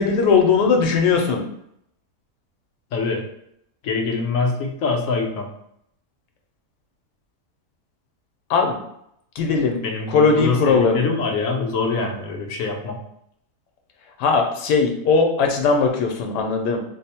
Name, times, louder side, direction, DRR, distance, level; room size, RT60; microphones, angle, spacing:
voice 1, 0.0-1.4 8.5-8.8 9.4-11.0 14.2-16.8, left 5 dB, 90° left, 3 dB, 1.2 m, -19 dB
voice 2, 2.9-3.2 3.8-5.5 9.8-13.0, left 4 dB, 65° left, 1 dB, 0.9 m, -24 dB
3.4 x 2.0 x 4.2 m, 0.74 s
omnidirectional pair, 1.8 m